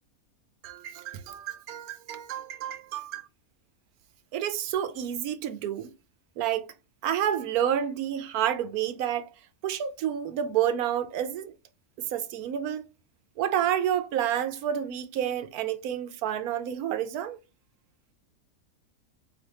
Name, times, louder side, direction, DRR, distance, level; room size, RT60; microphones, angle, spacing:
voice 1, 0.6-3.3 4.3-5.9 6.4-6.7 7.0-9.3 9.6-11.5 12.0-12.9 13.4-17.4, right 10 dB, 85° right, 1.1 m, -29 dB
4.3 x 3.4 x 2.9 m
omnidirectional pair, 1.5 m